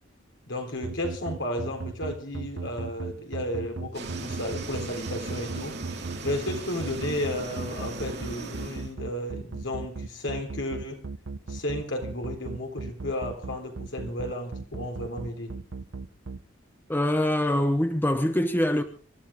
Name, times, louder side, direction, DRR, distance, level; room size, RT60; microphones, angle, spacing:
voice 1, 0.5-11.0 11.5-15.5, left 1 dB, 70° left, 3.9 m, -33 dB
sound 1, 0.8-16.4, right 4 dB, 75° right, 0.8 m, -35 dB
sound 2, 3.9-8.9, right 2 dB, 55° right, 2.8 m, -38 dB
voice 2, 16.9-18.8, left 1 dB, 10° left, 0.9 m, -24 dB
26.0 x 13.0 x 3.7 m
head